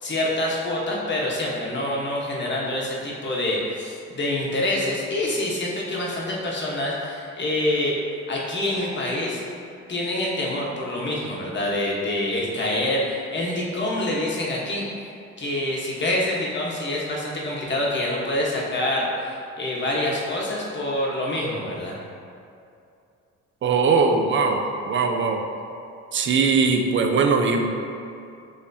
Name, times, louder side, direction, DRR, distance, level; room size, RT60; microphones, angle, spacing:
voice 1, 0.0-8.0 8.3-9.4 9.9-14.8 15.4-22.0, left 1 dB, 35° left, -4 dB, 1.1 m, -26 dB
voice 2, 23.6-25.4 26.1-27.7, right 4 dB, 40° right, 4 dB, 0.5 m, -20 dB
6.5 x 2.8 x 2.7 m, 2.5 s
cardioid pair, 90°, 30 cm